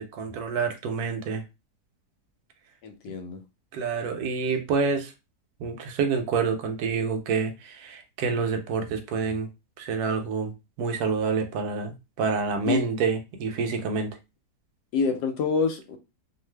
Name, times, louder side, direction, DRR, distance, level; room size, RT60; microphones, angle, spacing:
voice 1, 0.0-1.4 3.7-5.1 5.6-9.5 9.8-10.5 10.8-14.1, right 5 dB, 75° right, 1.1 m, -27 dB
voice 2, 2.8-3.4 12.7-12.8 14.9-16.0, left 4 dB, 85° left, 1.2 m, -26 dB
2.6 x 2.4 x 3.2 m
omnidirectional pair, 1.8 m